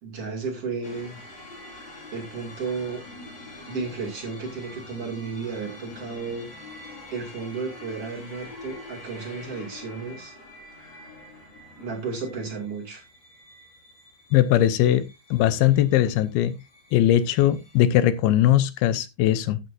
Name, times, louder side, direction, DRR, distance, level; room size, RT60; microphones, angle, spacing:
voice 1, 0.0-1.2 2.1-3.0 3.7-6.5 7.1-10.3 11.8-13.0, right 4 dB, 40° right, 3.2 m, -33 dB
sound 1, 0.8-17.8, left 2 dB, 30° left, 3.0 m, -45 dB
voice 2, 14.3-15.1 15.3-16.5 16.9-19.6, left 12 dB, 80° left, 2.7 m, -20 dB
12.5 x 8.5 x 2.7 m
omnidirectional pair, 4.5 m